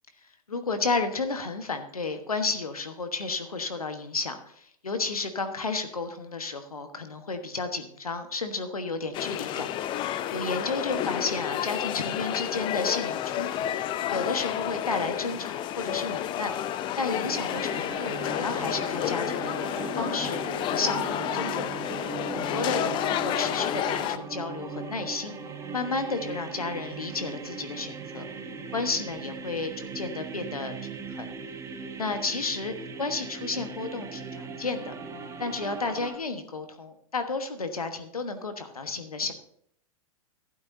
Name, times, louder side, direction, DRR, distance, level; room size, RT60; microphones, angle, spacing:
voice 1, 0.5-9.7 10.3-13.7 14.1-16.5 17.0-20.4 20.7-21.7 22.3-25.4 25.7-28.3 28.7-31.3 32.0-34.9 35.4-39.3, left 3 dB, 90° left, 8 dB, 1.3 m, -32 dB
sound 1, 9.1-24.2, left 11 dB, 25° left, 0.5 m, -30 dB
sound 2, 17.2-36.2, right 5 dB, 15° right, 1.1 m, -39 dB
12.0 x 12.0 x 2.7 m, 0.67 s
hypercardioid pair, 110°, 18 cm